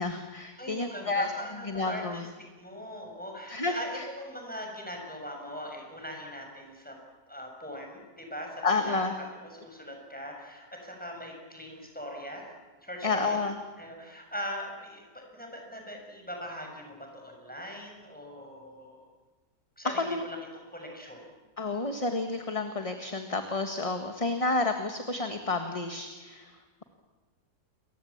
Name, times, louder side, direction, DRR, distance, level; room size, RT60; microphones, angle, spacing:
voice 1, 0.0-1.3 1.6-2.2 3.5-4.0 8.6-9.1 13.0-13.6 19.8-20.2 21.6-26.8, left 3 dB, 20° left, 6 dB, 1.6 m, -30 dB
voice 2, 0.6-2.2 2.6-7.0 7.3-9.1 9.4-12.5 12.8-13.5 13.8-19.0 19.8-21.3, equal, 5° left, 1 dB, 7.2 m, -41 dB
29.0 x 23.5 x 8.8 m, 1.3 s
omnidirectional pair, 1.8 m